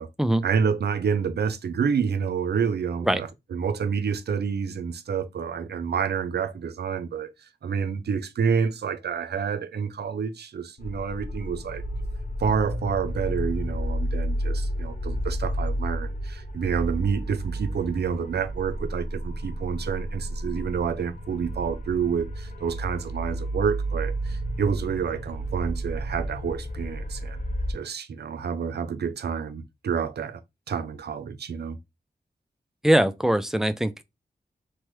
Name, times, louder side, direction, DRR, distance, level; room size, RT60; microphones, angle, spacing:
voice 1, 0.4-7.3 7.6-11.8 12.4-27.4 27.7-30.4 30.7-31.8, right 6 dB, 75° right, 0.5 m, -28 dB
sound 1, 10.8-27.7, right 1 dB, 50° left, 0.7 m, -31 dB
voice 2, 32.8-34.0, right 1 dB, 5° right, 0.4 m, -22 dB
2.9 x 2.2 x 3.1 m
cardioid pair, 45°, 17 cm